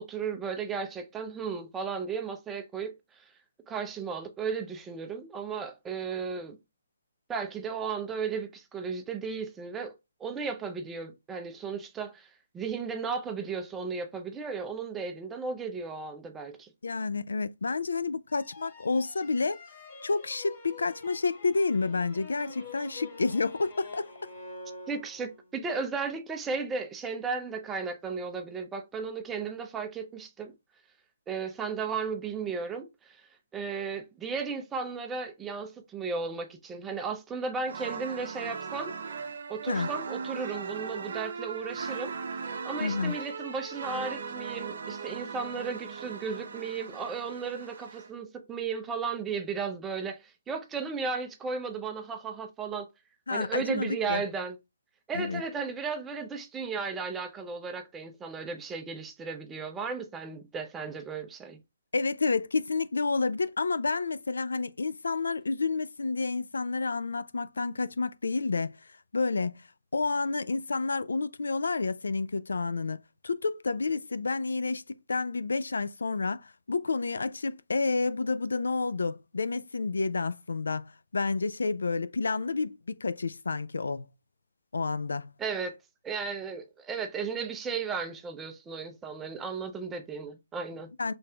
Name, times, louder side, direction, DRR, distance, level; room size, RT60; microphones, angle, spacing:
voice 1, 0.0-2.9 3.7-6.6 7.3-10.0 10.2-12.3 12.5-16.7 24.9-30.5 31.3-33.2 33.5-38.9 39.5-42.1 42.6-52.9 53.3-54.6 55.1-61.6 85.4-85.7 86.0-90.9, right 5 dB, 10° right, 0.5 m, -35 dB
voice 2, 16.8-19.6 20.0-24.3 39.7-39.9 42.8-43.1 53.3-54.2 55.1-55.4 61.9-68.8 69.1-69.6 69.9-74.8 75.1-84.1 84.7-85.3 91.0-91.1, left 4 dB, 85° left, 0.3 m, -30 dB
sound 1, 18.3-25.5, left 3 dB, 25° left, 1.4 m, -47 dB
sound 2, 37.7-48.1, right 5 dB, 55° right, 0.6 m, -38 dB
4.1 x 3.2 x 2.3 m
hypercardioid pair, 155°, 0 cm